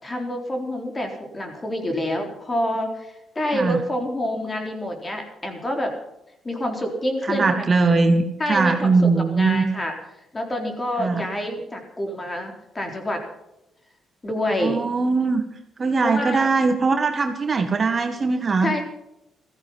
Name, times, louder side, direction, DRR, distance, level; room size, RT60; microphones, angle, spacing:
voice 1, 0.0-5.9 6.4-7.6 8.4-9.9 10.3-13.2 14.2-14.8 16.0-16.5 18.6-18.8, left 1 dB, 25° left, 3 dB, 3.8 m, -27 dB
voice 2, 7.3-9.7 11.0-11.2 14.5-15.4 15.8-18.7, right 4 dB, 35° right, 6 dB, 1.7 m, -21 dB
15.0 x 14.5 x 5.6 m, 0.88 s
cardioid pair, 90°, 0 cm